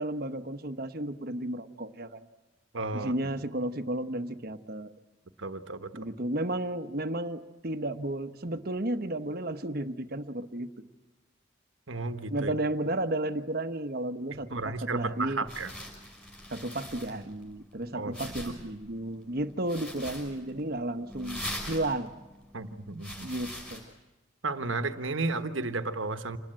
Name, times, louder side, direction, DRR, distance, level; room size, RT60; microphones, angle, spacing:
voice 1, 0.0-2.2 2.9-4.9 5.9-10.7 12.3-15.5 16.5-21.4 21.7-22.1 23.2-23.8, right 1 dB, 50° right, 9 dB, 1.1 m, -33 dB
voice 2, 2.7-3.1 5.4-6.1 11.9-12.5 14.3-15.7 17.9-18.5 22.5-23.3 24.4-26.4, right 3 dB, 75° right, 9 dB, 1.3 m, -33 dB
sound 1, 15.0-23.8, left 1 dB, 5° left, 6.1 m, -43 dB
27.0 x 20.0 x 9.1 m, 1.1 s
head